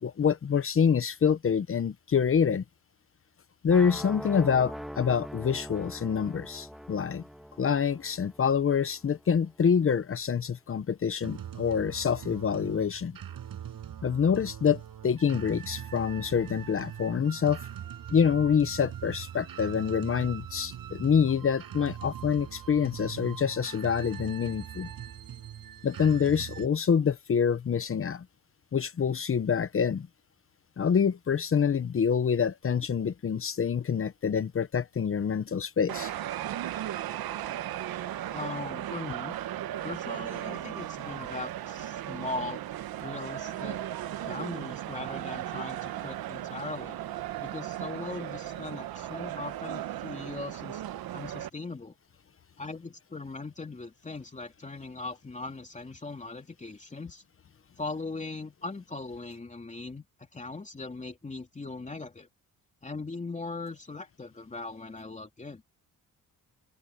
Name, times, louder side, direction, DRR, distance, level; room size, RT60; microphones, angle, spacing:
voice 1, 0.0-2.6 3.6-7.2 7.6-13.2 14.0-17.6 18.1-24.9 25.8-28.3 28.7-30.1 30.8-36.1, left 7 dB, 40° left, 0.9 m, -26 dB
sound 1, 3.7-9.6, equal, ahead, 1.9 m, -43 dB
sound 2, 11.2-26.7, right 10 dB, 70° right, 6.3 m, -41 dB
sound 3, 35.9-51.5, right 12 dB, 90° right, 1.0 m, -36 dB
voice 2, 38.3-39.3 39.8-42.6 43.0-43.8 44.3-47.0 47.4-50.8 51.1-51.9 52.6-57.2 57.8-60.0 60.3-62.3 62.8-65.6, left 3 dB, 20° left, 2.8 m, -39 dB
open air
cardioid pair, 130°, 35 cm